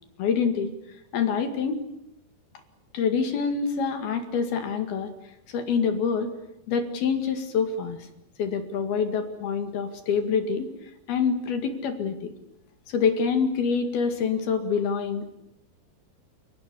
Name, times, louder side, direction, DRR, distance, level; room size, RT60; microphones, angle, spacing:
voice 1, 0.2-0.7 1.1-1.8 2.9-5.1 5.5-6.3 6.7-8.0 8.4-10.7 11.1-12.3 12.9-15.3, left 6 dB, 65° left, 7 dB, 3.9 m, -26 dB
29.5 x 18.5 x 9.8 m, 0.83 s
omnidirectional pair, 5.0 m